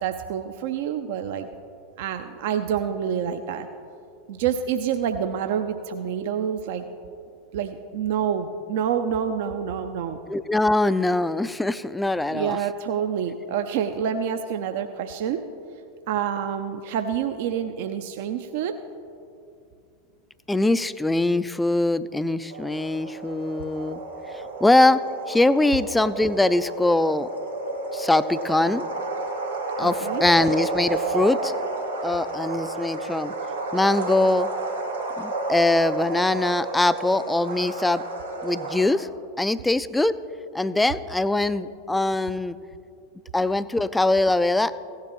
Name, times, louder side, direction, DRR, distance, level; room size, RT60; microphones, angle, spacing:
voice 1, 0.0-1.5 2.0-3.7 4.3-6.9 7.5-10.2 12.3-15.4 16.1-18.7 29.8-30.2, right 8 dB, 55° right, 8 dB, 0.5 m, -27 dB
voice 2, 10.3-12.6 20.5-24.0 24.3-25.0 25.3-27.3 27.9-28.9 29.8-31.5 32.0-33.3 33.7-34.5 35.2-38.0 38.4-39.1 39.4-40.1 40.5-42.6 43.3-44.7, left 2 dB, 5° left, 15 dB, 0.3 m, -22 dB
sound 1, 22.5-38.8, right 2 dB, 90° right, 1.8 m, -31 dB
16.0 x 10.0 x 3.1 m, 2.5 s
figure-of-eight pair, 85°, 0 cm